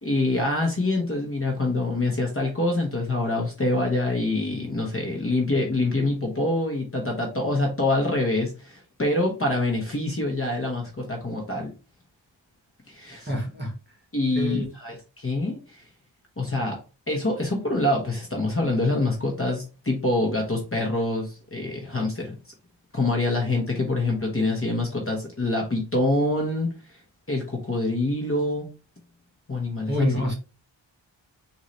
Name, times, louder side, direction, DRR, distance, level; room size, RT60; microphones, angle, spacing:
voice 1, 0.0-11.7 12.9-13.3 14.1-15.8 16.4-16.8 17.1-22.4 22.9-26.7 27.3-28.7 29.5-30.2, left 2 dB, 30° left, 0 dB, 1.0 m, -25 dB
voice 2, 13.3-13.7 14.3-14.6 29.8-30.3, equal, 25° right, 1 dB, 1.4 m, -27 dB
3.9 x 2.7 x 3.1 m, 0.32 s
wide cardioid pair, 110°, 46 cm